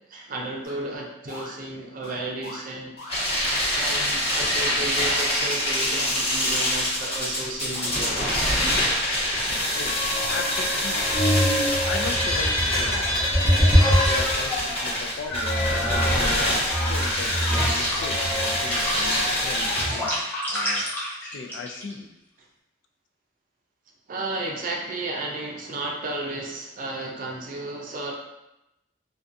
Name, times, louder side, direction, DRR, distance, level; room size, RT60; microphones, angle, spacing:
voice 1, 0.1-3.2 3.7-8.3 24.1-28.1, right 2 dB, 50° right, 0 dB, 0.5 m, -33 dB
sound 1, 0.6-0.7 1.3-1.5 2.0-2.2 2.4-2.6 3.0-3.1 3.6-3.7 3.9-4.4 4.7-5.3 6.0-6.1 6.6-6.7 7.2-7.3 7.7-7.8 8.2-8.3 8.6-9.0 9.5-9.6 10.1-10.4 10.9-11.1 11.6-12.1 12.7-13.1 13.7-13.9 14.7-15.0 15.4-17.2 17.8-20.1, left 2 dB, 60° left, 0.8 m, -37 dB
sound 2, 3.1-19.8, left 1 dB, 35° left, 1.0 m, -25 dB
sound 3, 9.7-14.7 15.3-21.9, equal, 10° left, 0.6 m, -25 dB
voice 2, 10.3-11.0 11.8-13.3 14.1-20.1 20.5-20.9 21.2-22.1, left 4 dB, 80° left, 4 dB, 0.3 m, -37 dB
2.4 x 2.3 x 2.5 m, 0.91 s
head